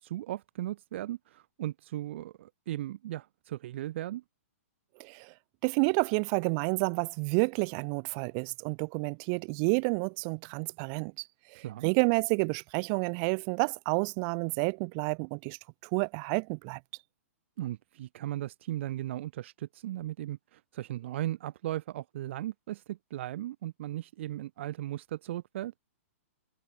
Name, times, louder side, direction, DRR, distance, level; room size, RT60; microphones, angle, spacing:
voice 1, 0.0-4.2 11.5-11.9 17.6-25.7, right 14 dB, 55° right, 0.8 m, -37 dB
voice 2, 5.0-5.3 5.6-11.1 11.5-15.6 15.9-16.8, right 40 dB or more, 35° right, 1.2 m, -29 dB
hypercardioid pair, 145°, 8 cm